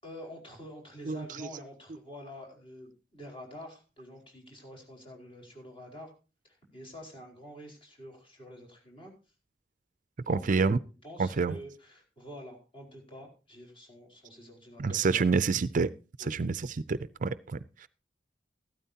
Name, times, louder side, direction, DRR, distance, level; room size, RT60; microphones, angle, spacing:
voice 1, 0.0-6.1 6.4-9.1 10.3-10.8 11.0-15.3 16.2-16.3, equal, 30° left, 1 dB, 4.8 m, -47 dB
voice 2, 1.1-1.5 10.3-10.8 11.2-11.6 14.8-15.9 16.3-16.6 16.9-17.9, right 4 dB, 45° right, 15 dB, 0.5 m, -28 dB
14.5 x 13.0 x 2.8 m, 0.32 s
head